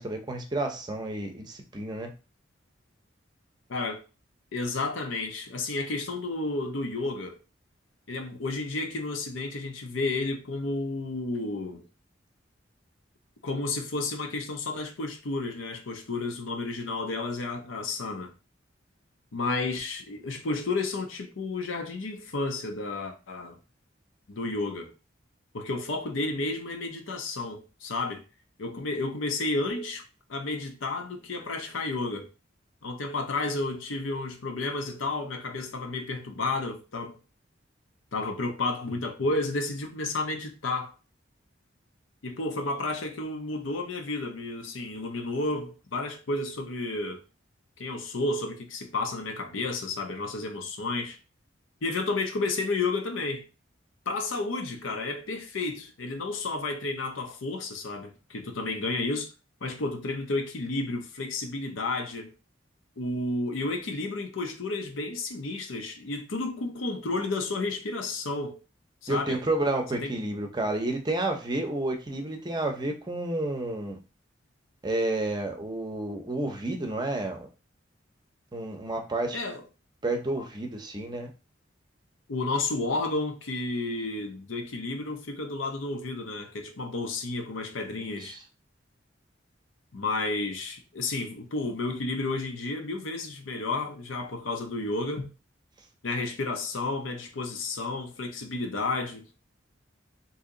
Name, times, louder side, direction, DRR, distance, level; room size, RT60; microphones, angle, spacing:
voice 1, 0.0-2.1 69.1-74.0 74.8-77.5 78.5-79.4 80.0-81.3 88.0-88.4, right 2 dB, 20° right, 0.6 m, -30 dB
voice 2, 3.7-4.0 4.5-7.4 8.1-11.9 13.4-18.3 19.3-23.6 24.3-24.9 25.5-28.2 28.6-30.0 30.3-32.3 32.8-37.2 38.1-40.9 42.2-47.2 47.8-51.2 51.8-53.5 54.1-59.3 59.6-62.3 63.0-68.6 69.0-69.4 70.0-70.1 79.3-79.6 82.3-88.4 89.9-95.3 96.0-99.3, left 3 dB, 90° left, 0.7 m, -31 dB
2.8 x 2.7 x 3.7 m
head